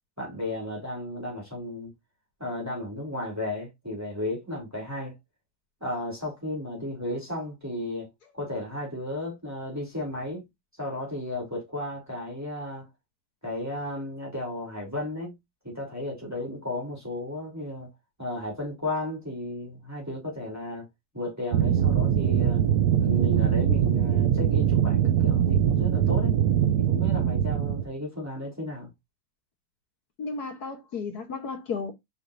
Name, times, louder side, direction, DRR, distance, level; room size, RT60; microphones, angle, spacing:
voice 1, 0.2-1.9 2.4-5.1 5.8-8.1 8.3-10.4 10.8-12.9 13.4-15.3 15.6-17.9 18.2-20.8 21.1-22.7 23.0-26.4 26.8-28.9, left 1 dB, 5° right, 3.2 m, -34 dB
sound 1, 21.5-27.8, right 9 dB, 80° right, 0.8 m, -22 dB
voice 2, 30.2-31.9, left 4 dB, 50° left, 1.5 m, -33 dB
7.4 x 5.1 x 2.7 m
omnidirectional pair, 2.4 m